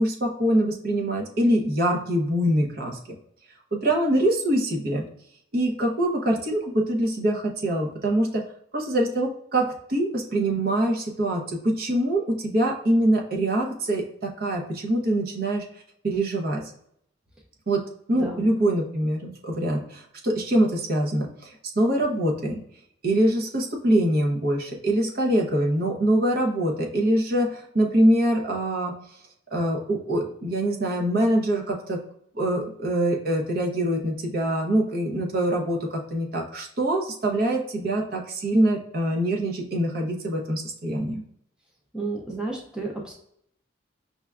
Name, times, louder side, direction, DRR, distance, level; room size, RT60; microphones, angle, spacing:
voice 1, 0.0-3.0 3.7-5.0 5.5-8.4 8.7-15.7 16.0-16.6 17.7-22.6 23.0-28.9 29.5-32.0 32.3-41.2, right 1 dB, 50° right, 0 dB, 0.7 m, -24 dB
voice 2, 18.1-18.5 41.9-43.1, right 3 dB, 5° right, -2 dB, 0.5 m, -32 dB
5.6 x 2.2 x 2.3 m, 0.71 s
head